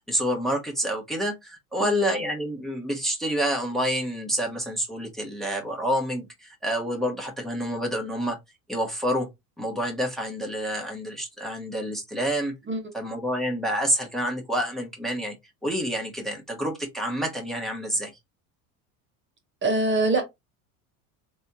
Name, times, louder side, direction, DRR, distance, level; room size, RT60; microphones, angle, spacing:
voice 1, 0.1-8.4 8.7-9.3 9.6-12.5 12.9-15.3 15.6-18.1, equal, ahead, 1.2 m, -28 dB
voice 2, 1.8-2.2 12.7-12.8 19.6-20.2, right 2 dB, 25° right, 1.0 m, -24 dB
3.5 x 3.2 x 2.7 m
supercardioid pair, 100°, 43 cm